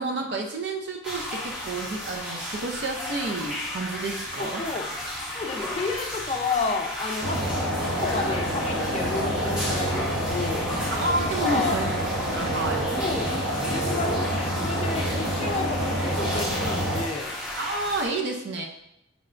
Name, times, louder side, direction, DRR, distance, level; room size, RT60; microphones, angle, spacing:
voice 1, 0.0-4.6 10.9-11.9 12.3-12.8 17.5-18.7, right 2 dB, 55° right, 1 dB, 0.4 m, -30 dB
sound 1, 1.0-18.1, left 1 dB, 5° right, 0.7 m, -34 dB
voice 2, 4.4-4.9 5.3-7.4 8.0-10.7 11.4-11.8 13.0-13.3 13.6-17.4, left 4 dB, 30° left, 3 dB, 0.4 m, -31 dB
sound 2, 7.2-17.0, right 1 dB, 90° right, 1.0 m, -28 dB
4.9 x 2.2 x 3.7 m, 0.84 s
head